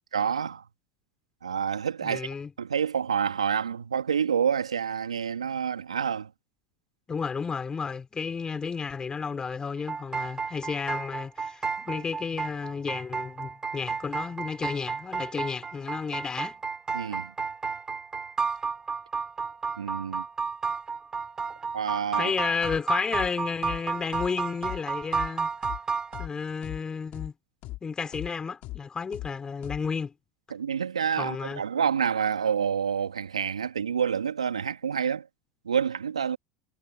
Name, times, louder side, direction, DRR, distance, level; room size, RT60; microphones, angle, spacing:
voice 1, 0.1-0.6 1.4-2.3 2.6-6.3 16.9-17.3 19.8-20.2 21.7-22.3 30.5-35.3 35.6-36.4, right 7 dB, 85° right, 2.6 m, -28 dB
voice 2, 2.0-2.5 7.1-16.6 22.2-25.5 26.2-27.3 27.8-30.1 31.2-31.6, left 5 dB, 25° left, 4.6 m, -32 dB
sound 1, 9.8-26.3, right 5 dB, 25° right, 4.5 m, -32 dB
sound 2, 22.6-22.8 23.1-23.3 23.6-23.8 24.1-24.3 24.6-24.8 25.1-25.3 25.6-25.8 26.1-26.3 26.6-26.8 27.1-27.3 27.6-27.8 28.1-28.3 28.6-28.8 29.1-29.3 29.6-29.8, left 18 dB, 55° left, 3.2 m, -38 dB
hypercardioid pair, 80°, 3 cm